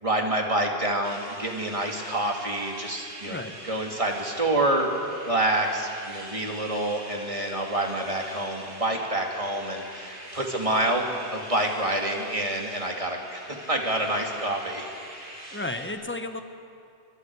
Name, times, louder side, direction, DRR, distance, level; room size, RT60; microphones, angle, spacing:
voice 1, 0.0-4.9 5.3-14.8, right 1 dB, 30° right, 0 dB, 2.5 m, -27 dB
sound 1, 1.0-15.9, right 1 dB, 85° right, 3.5 m, -43 dB
voice 2, 3.2-3.6 15.5-16.4, left 2 dB, 10° left, 7 dB, 1.1 m, -33 dB
29.0 x 24.0 x 4.8 m, 2.5 s
omnidirectional pair, 1.1 m